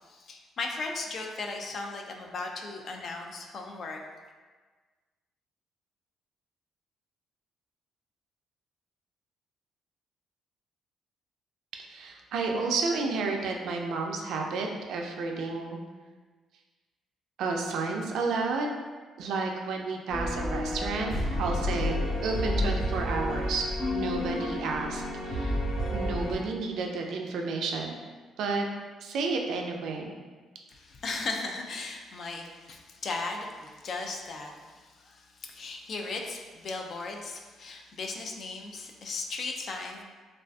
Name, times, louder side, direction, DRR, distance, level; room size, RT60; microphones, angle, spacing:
voice 1, 0.0-4.0 30.7-40.0, left 3 dB, 55° left, 2 dB, 0.3 m, -37 dB
voice 2, 11.7-15.8 17.4-18.7 19.2-21.1 21.4-22.0 22.2-25.6 25.9-27.9 28.4-28.7 29.0-30.1, right 4 dB, 75° right, 2 dB, 0.3 m, -31 dB
sound 1, 20.1-26.4, left 1 dB, 80° left, 1.1 m, -30 dB
2.4 x 2.4 x 2.3 m, 1.4 s
cardioid pair, 85°, 0 cm